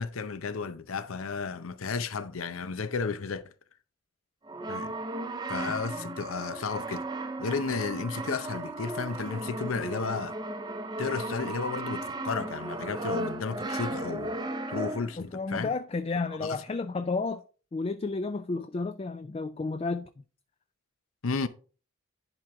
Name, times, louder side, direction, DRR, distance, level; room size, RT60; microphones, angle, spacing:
voice 1, 0.0-3.4 4.7-4.9 5.5-7.0 7.4-10.4 11.0-14.4 14.7-15.7 16.4-16.6 21.2-21.5, left 4 dB, 90° left, 0.7 m, -33 dB
Brass instrument, 4.4-15.3, right 2 dB, 20° right, 0.6 m, -35 dB
voice 2, 15.2-17.4 17.7-20.2, left 3 dB, 30° left, 0.3 m, -32 dB
10.5 x 4.5 x 3.7 m
head